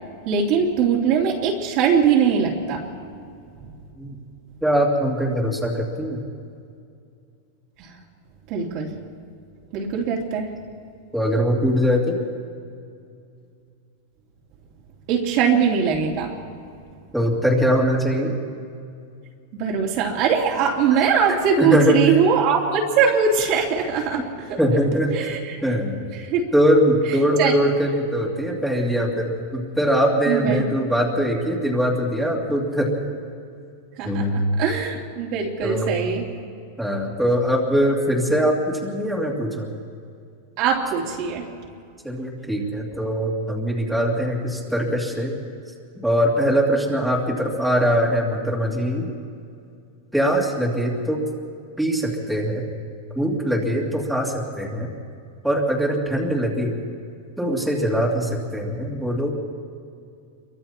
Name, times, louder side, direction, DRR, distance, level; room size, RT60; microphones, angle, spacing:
voice 1, 0.2-2.9 7.8-7.9 8.5-8.9 9.7-10.5 15.1-16.4 19.5-24.2 24.5-24.6 25.1-25.6 26.2-26.4 27.4-27.6 30.2-30.7 34.0-36.3 40.6-41.5, right 6 dB, 45° right, -1 dB, 2.9 m, -21 dB
voice 2, 4.6-6.2 11.1-12.2 17.1-18.3 21.3-22.0 24.6-25.1 25.6-26.1 26.5-32.9 34.0-34.5 35.6-36.0 36.8-39.7 42.0-45.4 46.0-49.1 50.1-51.2 51.8-52.7 53.1-54.9 55.4-56.8 57.4-59.4, equal, ahead, -3 dB, 2.8 m, -22 dB
28.0 x 23.5 x 4.4 m, 2.4 s
supercardioid pair, 155°, 0 cm